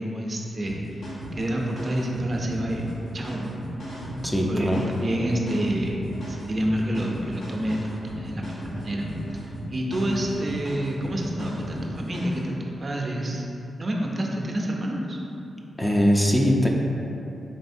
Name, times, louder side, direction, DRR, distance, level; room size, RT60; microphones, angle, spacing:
voice 1, 0.0-2.9 3.1-3.6 4.5-9.1 9.3-13.5 13.7-15.2, right 1 dB, 45° right, -1 dB, 0.5 m, -28 dB
sound 1, 0.7-12.5, equal, 80° left, 1.0 m, -36 dB
voice 2, 4.2-4.9 15.8-16.7, equal, 15° left, -1 dB, 0.4 m, -21 dB
4.1 x 3.2 x 2.6 m, 3.0 s
cardioid pair, 55°, 0 cm